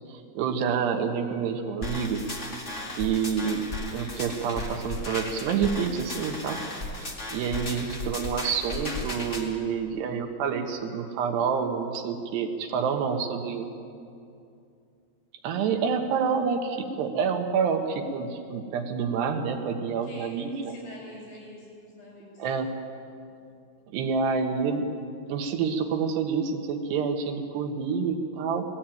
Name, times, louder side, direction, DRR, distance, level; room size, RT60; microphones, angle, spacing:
voice 1, 0.1-2.2 2.9-3.7 3.9-6.6 7.3-13.7 15.4-20.7 22.4-22.8 23.9-24.9 25.3-28.7, right 6 dB, 80° right, 4 dB, 3.4 m, -28 dB
sound 1, 1.8-9.4, left 1 dB, 30° left, 1.4 m, -35 dB
voice 2, 7.3-7.7 20.0-22.5, left 1 dB, 70° left, -3 dB, 9.1 m, -46 dB
19.5 x 15.0 x 9.2 m, 2.5 s
omnidirectional pair, 4.8 m